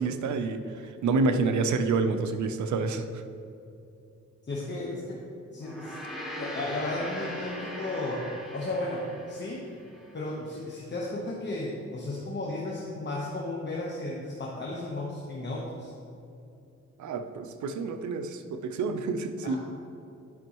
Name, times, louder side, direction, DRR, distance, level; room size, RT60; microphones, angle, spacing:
voice 1, 0.0-3.2 17.0-19.6, right 4 dB, 75° right, 8 dB, 0.6 m, -28 dB
voice 2, 4.5-5.2 5.5-6.0 6.4-9.6 10.1-15.9 19.4-19.6, left 2 dB, 35° left, -3 dB, 1.1 m, -34 dB
Gong, 5.6-10.2, equal, ahead, 1.6 m, -40 dB
11.0 x 5.3 x 3.0 m, 2.7 s
cardioid pair, 95°, 29 cm